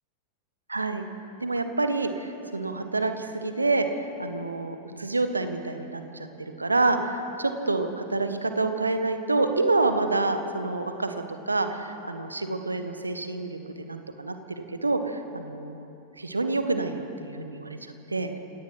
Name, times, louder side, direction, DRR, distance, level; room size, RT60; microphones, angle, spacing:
voice 1, 0.7-1.0 1.4-15.8 16.2-18.4, right 3 dB, 80° right, 7 dB, 1.6 m, -28 dB
28.0 x 17.5 x 6.0 m, 2.9 s
figure-of-eight pair, 90°, 0 cm